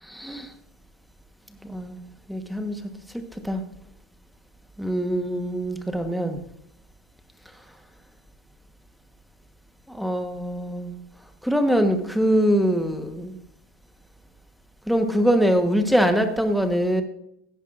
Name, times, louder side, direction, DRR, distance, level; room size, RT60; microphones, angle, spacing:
voice 1, 0.0-0.5 1.6-2.0 2.3-2.8 3.1-3.6 4.8-6.4 9.9-10.9 11.4-13.4 14.9-17.0, equal, ahead, 6 dB, 1.2 m, -23 dB
16.5 x 10.0 x 2.5 m, 0.77 s
supercardioid pair, 140°, 0 cm